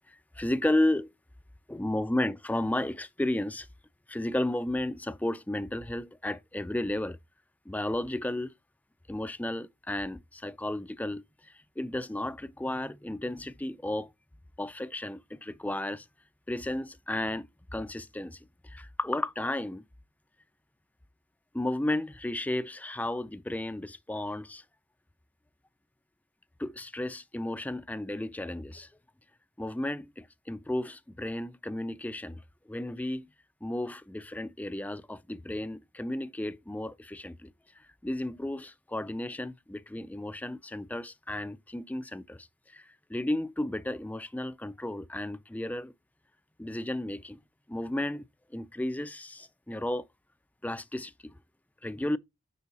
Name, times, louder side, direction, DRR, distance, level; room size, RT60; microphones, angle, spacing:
voice 1, 0.1-1.1 1.7-3.7 4.1-7.2 7.7-8.5 9.1-14.1 14.6-16.1 16.5-19.8 21.5-24.6 26.6-28.9 29.6-33.3 33.6-37.5 38.0-45.9 46.6-47.4 47.7-50.1 50.6-51.3 51.8-52.2, left 1 dB, 5° left, 0.4 m, -33 dB
9.6 x 3.5 x 4.1 m
head